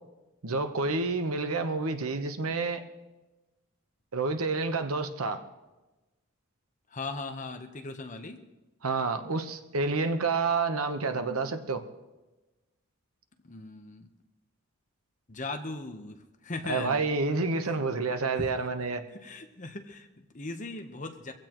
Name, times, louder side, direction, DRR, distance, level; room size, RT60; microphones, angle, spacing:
voice 1, 0.4-2.8 4.1-5.4 8.8-11.8 16.6-19.0, right 3 dB, 80° right, 8 dB, 1.1 m, -29 dB
voice 2, 6.9-8.4 13.4-14.1 15.3-17.0 18.4-18.5 19.1-21.3, left 3 dB, 35° left, 6 dB, 1.0 m, -38 dB
23.5 x 15.5 x 3.1 m, 1.1 s
head